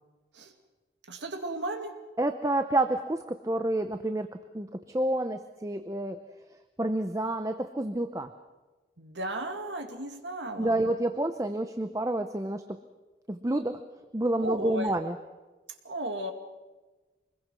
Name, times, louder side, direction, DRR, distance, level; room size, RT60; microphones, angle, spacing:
voice 1, 1.1-2.0 9.0-10.8 14.4-15.0 15.8-16.3, right 1 dB, 85° right, 6 dB, 2.3 m, -35 dB
voice 2, 2.2-4.3 4.5-6.2 6.8-8.3 10.6-12.6 13.3-13.8 14.1-15.2, right 1 dB, 20° right, 8 dB, 0.7 m, -29 dB
25.0 x 21.0 x 6.2 m, 1.2 s
head